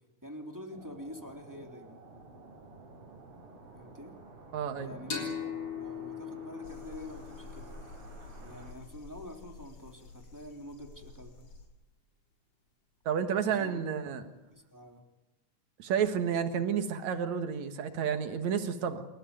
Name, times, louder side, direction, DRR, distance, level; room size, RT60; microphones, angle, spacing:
voice 1, 0.2-2.0 3.7-4.1 4.8-5.3 5.7-7.7 8.4-11.5 13.4-13.8 14.5-15.0, left 1 dB, 5° right, 3 dB, 2.5 m, -46 dB
sound 1, 0.7-8.7, right 3 dB, 50° right, 4.5 m, -52 dB
voice 2, 4.5-5.1 13.1-14.3 15.8-19.0, right 7 dB, 70° right, 8 dB, 2.8 m, -31 dB
sound 2, 5.1-8.5, left 7 dB, 35° left, 4.4 m, -40 dB
sound 3, 6.6-11.7, left 3 dB, 65° left, 4.4 m, -50 dB
28.0 x 14.0 x 9.4 m, 1.0 s
omnidirectional pair, 3.4 m